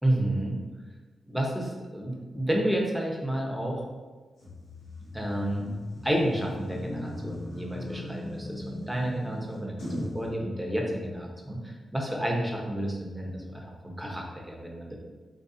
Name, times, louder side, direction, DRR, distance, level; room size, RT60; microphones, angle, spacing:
voice 1, 0.0-0.6 1.3-3.8 5.1-5.7 6.0-15.0, right 1 dB, 5° right, -1 dB, 1.0 m, -30 dB
sound 1, 4.4-10.2, left 1 dB, 90° left, 1.0 m, -38 dB
4.1 x 3.1 x 2.8 m, 1.3 s
supercardioid pair, 45°, 0 cm